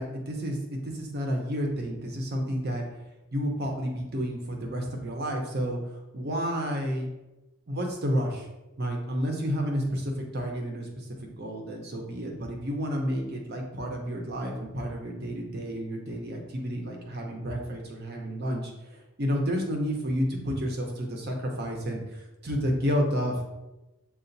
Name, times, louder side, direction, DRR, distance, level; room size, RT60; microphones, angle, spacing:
voice 1, 0.0-2.8 3.3-5.8 6.1-7.1 7.7-8.4 8.8-22.0 22.4-23.4, equal, 45° right, 1 dB, 0.7 m, -30 dB
6.8 x 2.4 x 2.6 m, 1.0 s
head